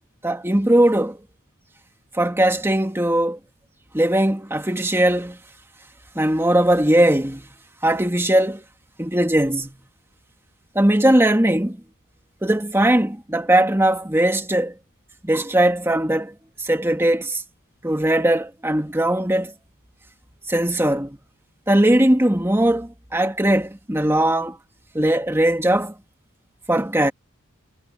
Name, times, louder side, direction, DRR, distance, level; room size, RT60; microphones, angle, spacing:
voice 1, 0.2-1.2 2.1-3.4 3.9-5.4 6.2-7.5 7.8-8.6 9.0-9.8 10.8-11.8 12.4-14.7 15.2-16.3 16.6-17.4 17.8-19.5 20.5-21.2 21.7-24.6 24.9-25.9 26.7-27.1, right 1 dB, 10° right, 1.8 m, -19 dB
head